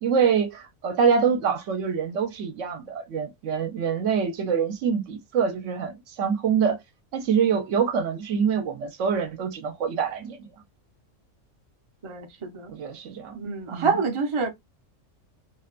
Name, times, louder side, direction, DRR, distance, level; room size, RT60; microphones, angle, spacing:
voice 1, 0.0-6.8 7.1-10.5 12.7-13.4 13.7-14.0, right 6 dB, 70° right, 0.9 m, -25 dB
voice 2, 12.0-12.7 13.4-14.5, right 4 dB, 35° right, 0.5 m, -27 dB
2.6 x 2.1 x 2.3 m
omnidirectional pair, 1.3 m